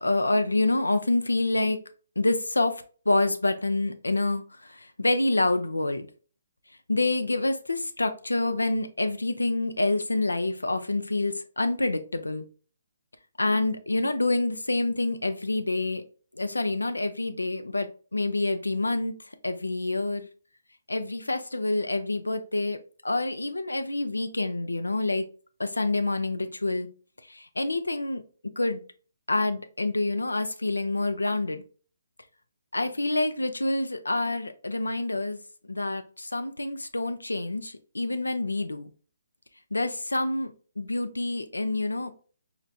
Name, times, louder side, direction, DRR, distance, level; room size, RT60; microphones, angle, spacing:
voice 1, 0.0-1.8 2.2-4.4 5.0-6.1 6.9-12.4 13.4-16.0 16.4-17.9 18.1-19.1 19.4-20.3 20.9-22.8 23.0-25.2 25.6-26.9 27.3-28.2 28.6-28.8 29.3-31.6 32.7-35.4 35.7-38.9 39.7-42.1, left 2 dB, 85° left, 9 dB, 0.4 m, -27 dB
4.4 x 2.4 x 2.2 m, 0.40 s
figure-of-eight pair, 140°, 0 cm